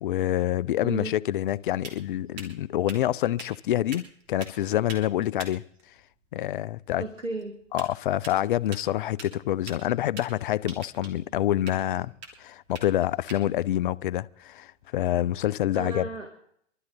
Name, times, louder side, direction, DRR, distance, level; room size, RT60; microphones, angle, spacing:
voice 1, 0.0-5.6 6.3-7.0 7.7-12.1 12.4-16.1, left 13 dB, 45° left, 0.5 m, -27 dB
sound 1, 0.6-15.3, right 4 dB, 30° right, 3.1 m, -48 dB
voice 2, 0.8-1.1 7.0-7.5 15.7-16.3, right 3 dB, 90° right, 2.1 m, -34 dB
24.0 x 13.0 x 4.1 m
figure-of-eight pair, 110°, 38 cm